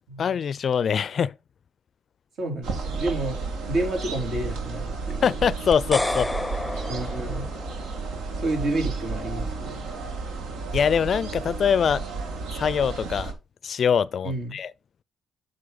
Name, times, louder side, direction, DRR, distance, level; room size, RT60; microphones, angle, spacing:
voice 1, 0.2-1.3 5.2-6.3 10.7-12.0 12.6-13.3 13.6-14.7, left 7 dB, 55° left, 0.4 m, -23 dB
voice 2, 2.4-5.2 6.9-7.5 8.4-9.8 14.2-14.6, right 2 dB, 65° right, 3.4 m, -30 dB
sound 1, 2.6-13.3, right 4 dB, 85° right, 1.8 m, -32 dB
sound 2, 5.7-8.0, left 2 dB, 10° left, 0.6 m, -30 dB
7.9 x 5.5 x 4.0 m
cardioid pair, 90°, 0 cm